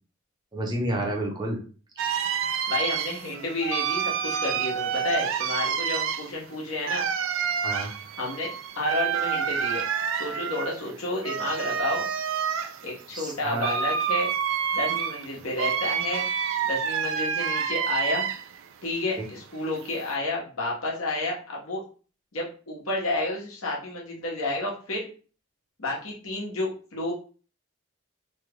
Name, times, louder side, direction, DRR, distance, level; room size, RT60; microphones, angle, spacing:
voice 1, 0.5-1.6 2.0-2.3 7.6-7.9 13.1-13.7, right 1 dB, 20° right, 0 dB, 0.6 m, -30 dB
sound 1, 2.0-18.6 19.0-20.1, right 7 dB, 65° right, 0.3 m, -28 dB
voice 2, 2.7-7.1 8.2-8.5 8.8-9.8 10.2-12.1 12.8-14.3 14.7-16.3 16.6-18.3 18.8-21.8 22.3-25.1 25.8-27.1, left 2 dB, 85° left, -3 dB, 1.2 m, -30 dB
3.1 x 2.2 x 3.6 m, 0.38 s
head